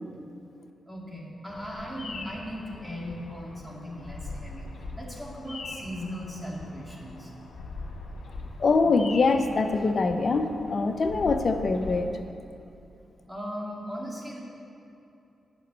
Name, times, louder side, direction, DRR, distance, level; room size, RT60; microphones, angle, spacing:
voice 1, 0.8-7.3 13.3-14.4, equal, 10° right, -3 dB, 2.4 m, -38 dB
Bird vocalization bird call bird song, 1.5-12.0, left 3 dB, 70° left, 1.5 m, -41 dB
voice 2, 8.6-12.1, left 3 dB, 55° left, 7 dB, 0.8 m, -24 dB
9.3 x 6.1 x 7.4 m, 2.7 s
cardioid pair, 65°, 0 cm